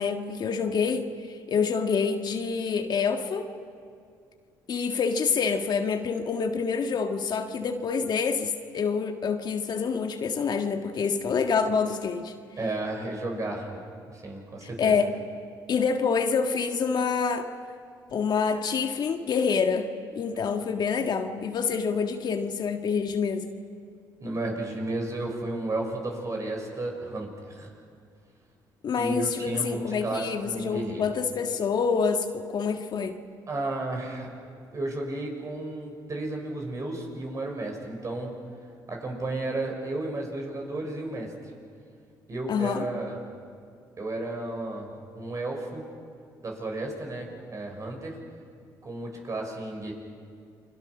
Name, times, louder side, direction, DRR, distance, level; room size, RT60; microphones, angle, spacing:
voice 1, 0.0-3.5 4.7-12.3 14.6-15.1 15.7-17.5 18.1-19.9 20.1-23.5 28.8-33.2 42.5-42.9, left 5 dB, 55° left, 5 dB, 1.6 m, -27 dB
voice 2, 12.6-13.8 14.1-15.0 24.2-27.7 29.0-31.1 33.5-34.3 34.7-38.3 38.9-41.3 42.3-43.2 44.0-44.9 45.1-45.8 46.4-48.2 48.8-49.9, right 2 dB, 40° right, 1 dB, 6.3 m, -33 dB
29.0 x 23.0 x 6.1 m, 2.3 s
supercardioid pair, 75°, 9 cm